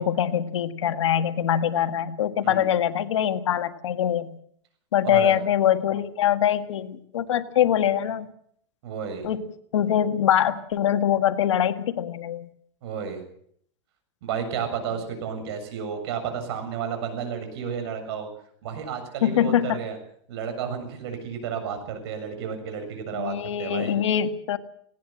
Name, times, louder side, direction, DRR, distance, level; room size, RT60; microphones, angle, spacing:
voice 1, 0.0-4.3 4.9-8.3 9.2-9.4 9.7-12.5 19.2-19.8 23.1-24.6, left 10 dB, 85° left, 8 dB, 1.8 m, -23 dB
voice 2, 5.0-5.4 8.8-9.3 12.8-13.2 14.2-18.3 18.6-20.0 20.3-24.0, right 7 dB, 60° right, 7 dB, 7.3 m, -32 dB
19.0 x 18.0 x 7.5 m, 0.66 s
supercardioid pair, 150°, 15 cm